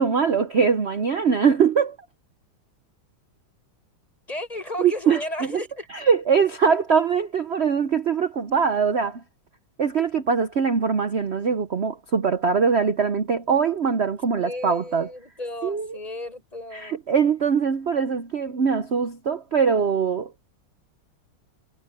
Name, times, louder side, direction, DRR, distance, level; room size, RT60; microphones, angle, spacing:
voice 1, 0.0-2.0 4.8-5.2 5.9-9.2 9.8-15.1 15.6-16.0 16.7-20.3, right 6 dB, 70° right, 0.6 m, -22 dB
voice 2, 4.3-5.9 14.3-17.0, left 1 dB, 15° left, 6.4 m, -34 dB
omnidirectional pair, 2.3 m